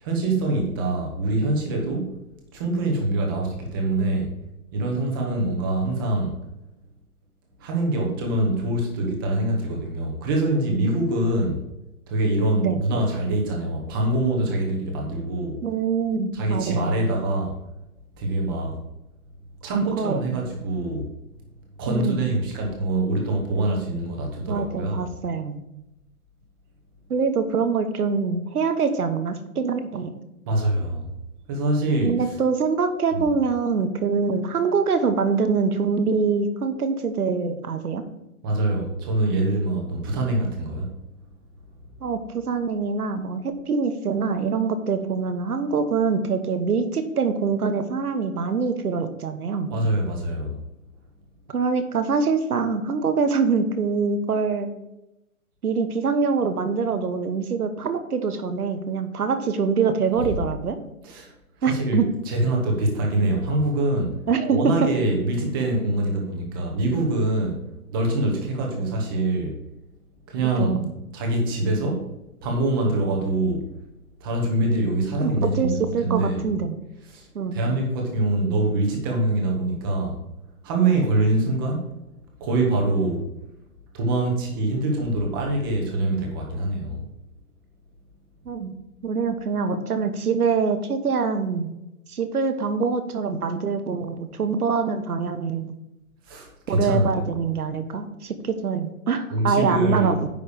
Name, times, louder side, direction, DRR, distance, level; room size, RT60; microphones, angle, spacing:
voice 1, 0.0-2.1 2.5-4.3 4.7-6.3 7.6-11.6 12.1-15.6 16.3-17.5 18.2-18.7 19.6-21.1 21.8-25.0 30.5-31.0 31.5-32.2 33.1-33.2 38.4-40.9 49.7-50.6 61.0-61.3 61.7-64.1 64.5-67.5 67.9-69.5 70.3-70.8 71.1-72.1 72.4-73.6 74.2-76.4 77.1-77.2 77.5-80.2 80.6-81.8 82.4-83.3 83.9-87.0 96.3-97.3 99.3-100.2, right 2 dB, 15° right, 0 dB, 1.1 m, -24 dB
voice 2, 15.6-16.9 19.7-20.2 21.9-22.3 24.5-25.6 27.1-30.1 32.0-38.0 42.0-49.7 51.5-54.7 55.6-60.8 61.6-62.1 64.3-64.7 70.6-70.9 75.2-76.8 77.3-77.6 88.4-88.7 89.0-91.7 92.1-95.7 96.7-100.3, right 5 dB, 80° right, 9 dB, 1.3 m, -24 dB
9.7 x 3.3 x 6.8 m, 0.90 s
hypercardioid pair, 165°, 44 cm